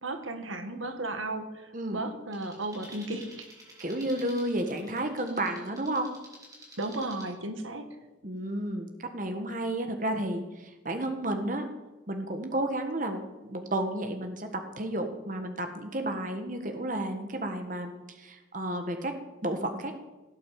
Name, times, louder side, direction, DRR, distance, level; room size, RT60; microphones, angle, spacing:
voice 1, 0.0-3.5 6.8-8.0, right 2 dB, 90° right, 7 dB, 1.9 m, -35 dB
sound 1, 2.3-7.3, right 1 dB, 20° right, 4.9 m, -51 dB
voice 2, 3.8-6.1 8.2-11.7 12.1-19.9, right 1 dB, 40° right, 6 dB, 1.6 m, -32 dB
17.5 x 8.7 x 8.6 m, 1.1 s
head